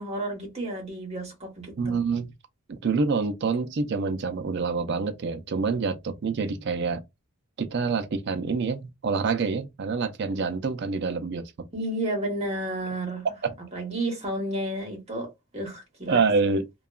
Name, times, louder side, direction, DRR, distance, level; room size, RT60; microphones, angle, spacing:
voice 1, 0.0-2.0 11.7-13.3 13.7-16.6, right 1 dB, 30° right, 1.0 m, -32 dB
voice 2, 1.8-2.3 2.7-7.0 7.6-11.7 13.4-13.5 16.1-16.6, right 4 dB, 50° right, 0.4 m, -26 dB
2.8 x 2.3 x 2.3 m
head